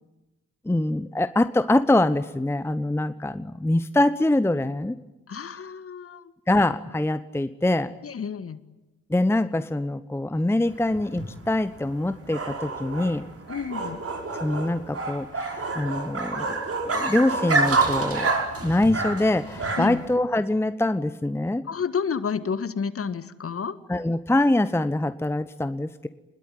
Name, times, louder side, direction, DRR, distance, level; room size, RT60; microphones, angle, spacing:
voice 1, 0.6-5.0 6.5-7.9 9.1-13.2 14.4-16.6 16.8-18.3 18.6-21.6 23.9-26.1, left 1 dB, 5° left, 13 dB, 1.0 m, -24 dB
voice 2, 5.3-6.3 8.0-8.6 13.5-14.0 19.8-20.0 21.7-23.7, left 6 dB, 30° left, 14 dB, 1.7 m, -30 dB
sound 1, 10.7-20.1, right 3 dB, 35° right, 5.3 m, -28 dB
26.5 x 21.5 x 9.4 m, 1.0 s
figure-of-eight pair, 45°, 42 cm